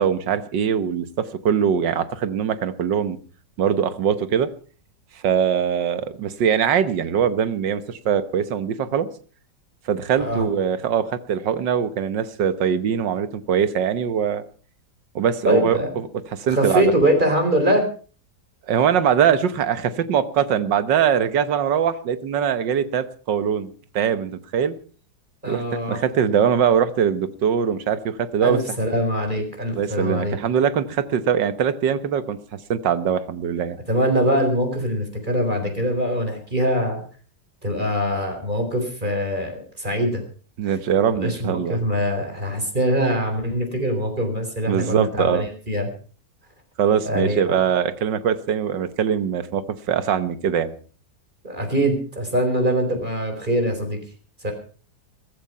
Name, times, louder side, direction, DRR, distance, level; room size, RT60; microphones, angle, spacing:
voice 1, 0.0-3.2 3.6-4.5 5.2-9.1 9.9-14.4 15.2-16.9 18.7-24.7 25.5-28.6 29.7-33.8 40.6-41.8 44.7-45.5 46.8-50.7, right 8 dB, 90° right, 13 dB, 1.8 m, -22 dB
voice 2, 10.2-10.5 15.4-15.9 16.4-17.9 25.4-26.0 28.4-30.4 33.9-37.0 37.6-40.2 40.6-40.7 41.1-45.9 47.1-47.6 51.4-54.0 54.4-54.5, equal, 25° right, 4 dB, 4.4 m, -23 dB
15.5 x 15.0 x 5.6 m, 0.41 s
omnidirectional pair, 1.9 m